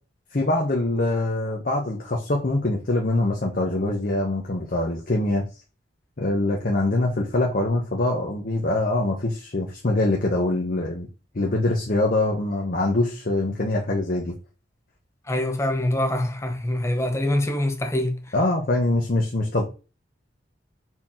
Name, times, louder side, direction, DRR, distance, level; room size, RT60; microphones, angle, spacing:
voice 1, 0.3-5.5 6.2-11.1 11.3-14.3 18.3-19.6, left 2 dB, 45° left, 0.8 m, -24 dB
voice 2, 15.3-18.2, left 1 dB, 15° left, 0.6 m, -24 dB
4.4 x 2.9 x 3.7 m
head